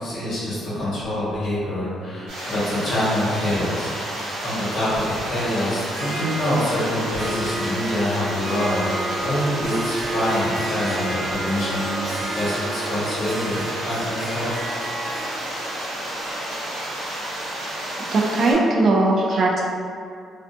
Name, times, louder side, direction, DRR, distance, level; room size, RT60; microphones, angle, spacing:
voice 1, 0.0-3.9 4.4-8.9 9.2-12.0 12.3-14.6, left 1 dB, 65° left, -9 dB, 1.1 m, -25 dB
sound 1, 2.3-18.5, right 1 dB, 85° right, 0.8 m, -31 dB
Harp, 5.9-17.7, right 1 dB, 30° right, 0.9 m, -32 dB
voice 2, 18.1-19.6, right 2 dB, 55° right, -2 dB, 0.3 m, -19 dB
2.4 x 2.3 x 2.5 m, 2.4 s
cardioid pair, 90°, 0 cm